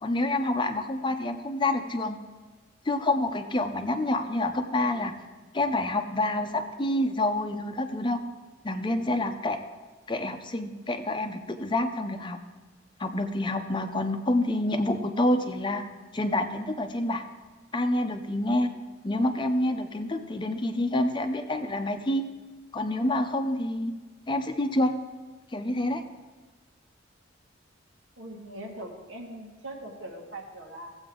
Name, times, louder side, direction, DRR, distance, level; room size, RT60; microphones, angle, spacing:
voice 1, 0.0-2.2 2.9-5.1 5.5-8.2 8.6-9.6 10.1-12.4 13.0-15.8 16.1-17.2 17.7-18.7 19.0-22.2 22.7-23.9 24.3-25.0 25.5-26.0, left 1 dB, 25° left, 7 dB, 0.6 m, -27 dB
voice 2, 28.2-31.0, right 1 dB, 90° right, 1 dB, 1.7 m, -41 dB
15.0 x 7.9 x 3.8 m, 1.3 s
head